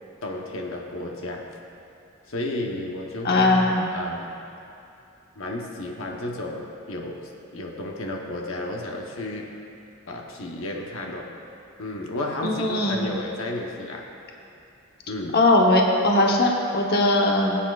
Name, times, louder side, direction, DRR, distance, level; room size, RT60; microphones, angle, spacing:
voice 1, 0.2-1.5 2.3-4.4 5.4-9.5 10.0-11.3 11.8-14.1 15.1-15.4, left 1 dB, 75° left, 0 dB, 1.0 m, -32 dB
voice 2, 3.2-3.8 12.4-13.0 15.3-17.6, left 2 dB, 50° left, -1 dB, 1.0 m, -20 dB
21.0 x 8.4 x 2.4 m, 2.7 s
head